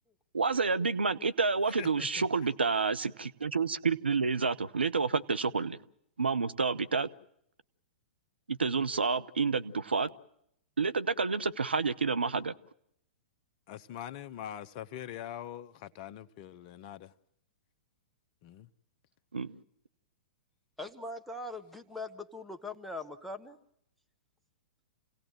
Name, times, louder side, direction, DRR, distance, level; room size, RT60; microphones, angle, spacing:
voice 1, 0.3-5.8 6.2-7.1 8.5-10.1 10.8-12.5 19.3-19.6, right 4 dB, 80° right, 0.9 m, -29 dB
voice 2, 1.8-2.3 13.7-17.1 18.4-18.7, left 11 dB, 45° left, 1.0 m, -43 dB
voice 3, 20.8-23.6, left 2 dB, ahead, 1.5 m, -41 dB
28.0 x 17.5 x 7.7 m
figure-of-eight pair, 110°, 6 cm